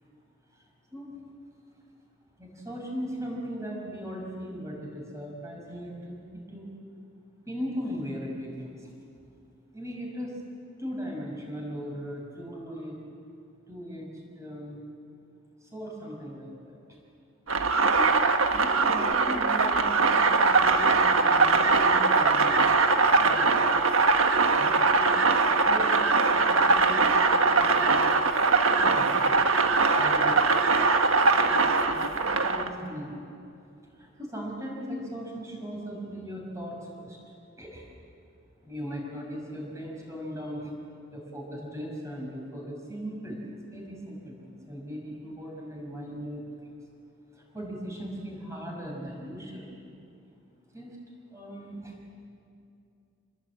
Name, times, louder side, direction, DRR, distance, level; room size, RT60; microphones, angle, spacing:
voice 1, 0.5-1.2 2.4-6.8 7.5-8.9 9.7-10.3 10.8-13.0 13.7-14.8 15.6-16.8 17.9-18.2 18.5-22.7 23.1-23.7 24.4-25.1 25.6-25.9 26.3-28.1 28.6-29.5 29.9-30.8 31.3-33.3 33.8-37.9 38.6-40.7 41.1-46.7 47.3-49.8 50.7-51.0 51.3-51.9, equal, 15° right, -1 dB, 6.0 m, -38 dB
sound 1, 17.5-32.7, right 4 dB, 75° right, 1.4 m, -22 dB
27.5 x 20.5 x 8.9 m, 2.5 s
head